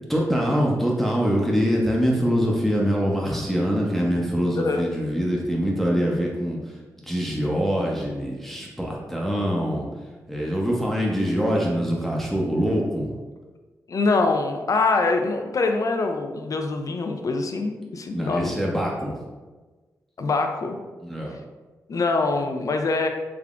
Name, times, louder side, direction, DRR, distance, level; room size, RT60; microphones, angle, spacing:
voice 1, 0.1-6.6 7.1-9.9 10.3-13.1 18.1-19.1 21.0-21.3, equal, 5° left, -3 dB, 0.7 m, -24 dB
voice 2, 13.9-18.5 20.2-20.8 21.9-23.1, left 3 dB, 55° left, 4 dB, 0.5 m, -24 dB
3.5 x 3.3 x 2.4 m, 1.3 s
cardioid pair, 50°, 7 cm